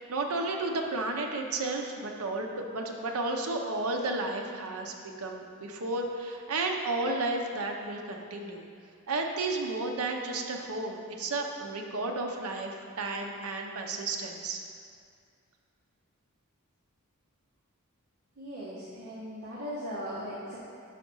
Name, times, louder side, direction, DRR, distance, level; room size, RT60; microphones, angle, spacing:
voice 1, 0.0-8.6 9.1-14.6, right 2 dB, 90° right, 2 dB, 0.7 m, -32 dB
voice 2, 18.4-20.6, equal, 50° right, -8 dB, 1.1 m, -38 dB
5.8 x 4.9 x 5.4 m, 2.3 s
head